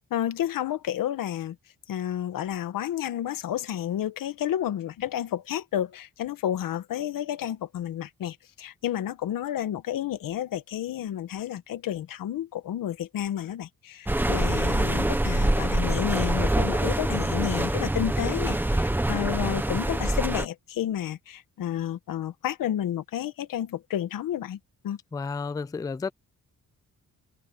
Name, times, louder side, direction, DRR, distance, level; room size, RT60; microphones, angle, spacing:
voice 1, 0.0-1.6 1.9-24.6 24.8-25.0, left 11 dB, 90° left, 1.4 m, -31 dB
sound 1, 14.1-20.5, right 1 dB, 5° right, 1.1 m, -25 dB
voice 2, 25.1-26.1, left 4 dB, 10° left, 0.4 m, -31 dB
wide cardioid pair, 160°, 33 cm